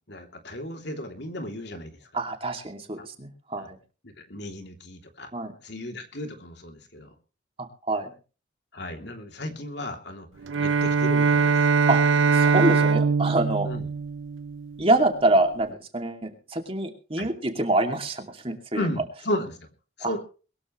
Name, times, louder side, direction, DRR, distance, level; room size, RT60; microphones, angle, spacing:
voice 1, 0.1-2.2 3.6-3.7 4.0-5.3 5.6-7.1 8.7-10.3 10.6-11.7 13.6-13.9 17.2-17.3 18.7-19.6 20.0-20.2, left 1 dB, 60° left, 4 dB, 3.1 m, -34 dB
voice 2, 2.1-3.8 5.3-5.5 7.6-8.1 11.9-12.0 12.3-13.7 14.8-18.9 20.0-20.1, right 2 dB, 30° right, 4 dB, 2.6 m, -26 dB
Bowed string instrument, 10.4-14.8, right 5 dB, 80° right, 0.7 m, -22 dB
22.0 x 14.0 x 3.2 m, 0.36 s
head